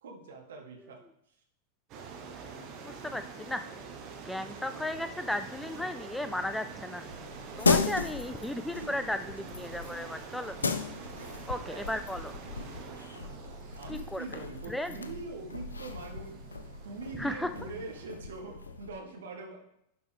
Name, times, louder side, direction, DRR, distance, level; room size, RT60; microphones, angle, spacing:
voice 1, 0.0-1.0 8.8-8.9 11.1-11.9 13.5-16.4 16.8-19.6, right 3 dB, 60° right, 1 dB, 1.4 m, -43 dB
sound 1, 1.9-18.1, right 5 dB, 40° right, 1.2 m, -46 dB
voice 2, 2.8-3.7 4.2-7.0 7.6-10.6 11.5-12.3 13.9-15.0 17.1-17.5, left 1 dB, 5° left, 10 dB, 0.3 m, -35 dB
sound 2, 7.1-19.0, left 4 dB, 75° left, 0.5 m, -35 dB
11.0 x 5.3 x 3.4 m, 0.79 s
figure-of-eight pair, 90°, 0 cm